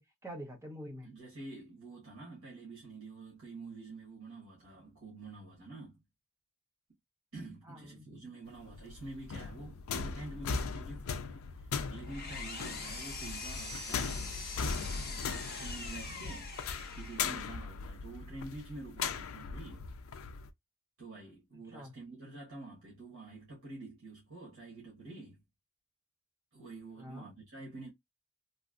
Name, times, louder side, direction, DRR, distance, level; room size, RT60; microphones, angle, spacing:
voice 1, 0.0-1.1 7.7-8.1 16.1-16.2 21.5-21.9 27.0-27.3, equal, 10° right, 0.7 m, -47 dB
voice 2, 1.0-6.0 7.3-14.3 14.9-16.5 16.9-19.9 21.0-25.4 26.5-27.9, right 2 dB, 70° right, 1.2 m, -48 dB
sound 1, 8.5-20.5, left 5 dB, 65° left, 0.4 m, -39 dB
Engine, 11.7-17.5, left 4 dB, 45° left, 1.1 m, -43 dB
3.0 x 2.6 x 2.4 m
head